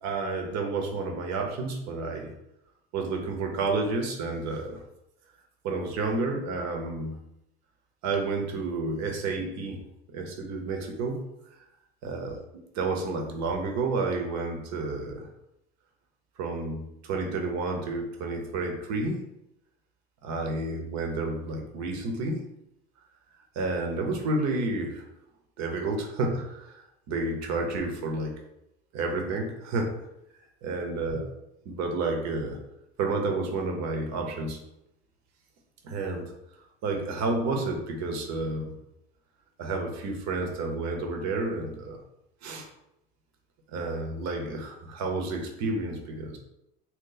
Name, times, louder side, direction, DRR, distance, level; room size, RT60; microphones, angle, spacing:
voice 1, 0.0-2.3 2.9-4.8 5.6-7.2 8.0-9.8 10.1-11.2 11.5-11.6 12.0-12.4 12.7-15.3 16.4-19.2 20.2-22.4 23.5-25.0 25.6-28.4 28.9-29.9 30.6-31.3 31.6-32.6 33.0-34.6 35.8-36.3 36.8-38.8 39.6-42.0 42.4-42.7 43.7-46.4, right 3 dB, 60° right, 2 dB, 0.9 m, -30 dB
2.9 x 2.3 x 3.9 m, 0.84 s
hypercardioid pair, 80°, 31 cm